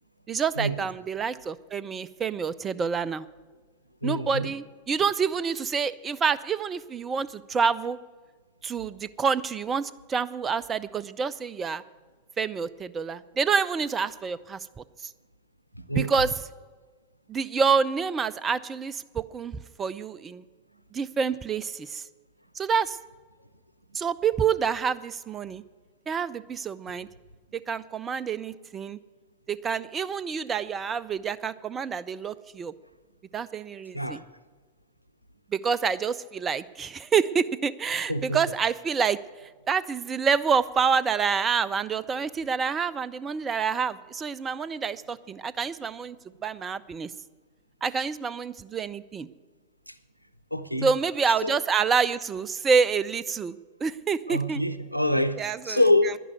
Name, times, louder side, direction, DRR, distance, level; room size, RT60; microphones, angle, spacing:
voice 1, 0.3-3.3 4.0-8.0 8.6-11.8 12.4-14.6 16.0-16.3 17.3-20.4 20.9-22.0 22.5-23.0 23.9-25.6 26.1-27.1 27.5-29.0 29.5-32.7 33.3-34.2 35.5-39.2 39.7-46.2 46.4-47.1 47.8-49.3 50.8-54.6 55.4-55.8, right 6 dB, 20° right, 0.4 m, -27 dB
voice 2, 4.0-4.5 15.7-16.1 33.9-34.2 38.1-38.4 49.9-50.0 50.5-50.9 51.4-51.6 54.3-56.2, left 1 dB, 90° right, 0.7 m, -26 dB
11.0 x 11.0 x 8.0 m
figure-of-eight pair, 90°, 0 cm